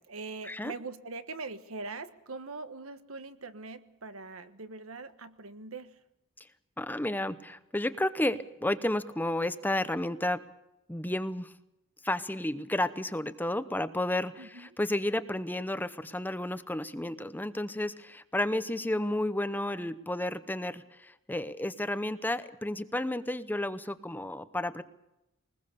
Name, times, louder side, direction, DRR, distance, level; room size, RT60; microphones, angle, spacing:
voice 1, 0.0-6.0 14.4-14.8, right 3 dB, 80° right, 10 dB, 1.5 m, -42 dB
voice 2, 6.8-10.4 10.9-11.5 12.0-24.8, left 1 dB, 10° left, 13 dB, 0.7 m, -32 dB
22.5 x 20.5 x 6.9 m, 0.89 s
head